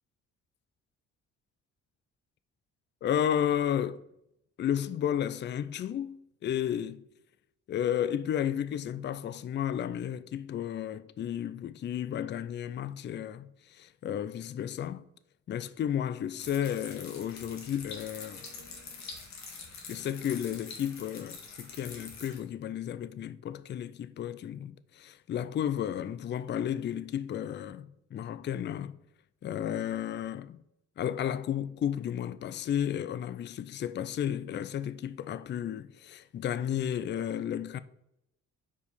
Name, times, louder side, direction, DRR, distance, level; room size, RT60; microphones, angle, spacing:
voice 1, 3.0-4.0 4.6-7.0 7.7-15.1 15.5-18.4 19.9-29.0 29.4-30.6 31.0-37.8, left 10 dB, 40° left, 0.4 m, -33 dB
sound 1, 16.4-22.4, left 4 dB, 65° left, 1.7 m, -45 dB
4.8 x 4.7 x 5.1 m
cardioid pair, 90°, 30 cm